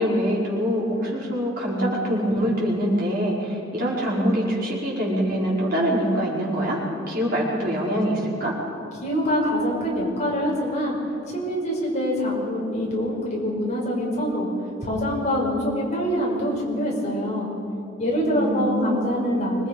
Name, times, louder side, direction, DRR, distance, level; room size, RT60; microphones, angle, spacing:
voice 1, 0.0-6.8 7.1-8.5 18.3-19.4, equal, 50° right, -5 dB, 5.5 m, -24 dB
voice 2, 9.0-11.0 11.3-14.5 14.8-17.5 18.0-19.7, equal, 40° left, -4 dB, 5.9 m, -25 dB
25.5 x 20.5 x 5.5 m, 2.6 s
head